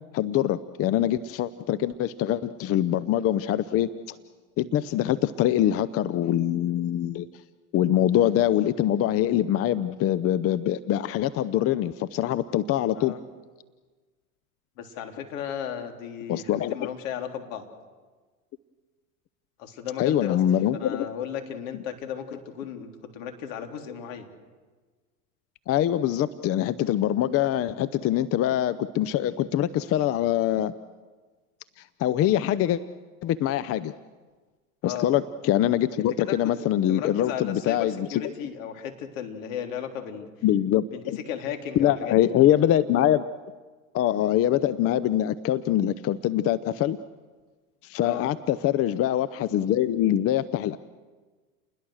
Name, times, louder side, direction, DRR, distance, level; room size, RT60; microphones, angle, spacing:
voice 1, 0.1-4.2 4.6-7.3 7.7-13.1 16.3-16.9 20.0-21.1 25.7-30.7 32.0-32.8 33.2-33.9 34.8-38.2 40.4-41.2 41.8-43.2 43.9-47.0 47.8-50.8, left 12 dB, 30° left, 15 dB, 0.8 m, -24 dB
voice 2, 14.8-17.7 19.6-20.4 20.7-24.3 34.8-35.1 36.2-36.5 36.9-40.3 40.9-42.2 48.0-48.3, left 8 dB, 60° left, 4 dB, 3.7 m, -35 dB
30.0 x 21.0 x 6.5 m, 1.4 s
hypercardioid pair, 100°, 44 cm